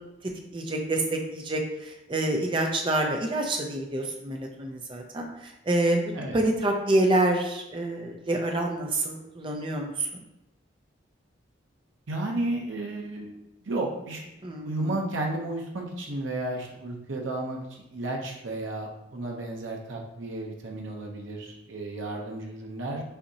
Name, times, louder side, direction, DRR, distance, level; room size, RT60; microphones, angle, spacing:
voice 1, 0.5-6.0 6.3-10.2 14.4-15.0, right 1 dB, 25° right, 2 dB, 0.5 m, -27 dB
voice 2, 12.1-13.3 13.6-14.2 14.6-23.0, right 2 dB, 75° right, 0 dB, 0.7 m, -33 dB
5.6 x 2.8 x 2.8 m, 0.91 s
head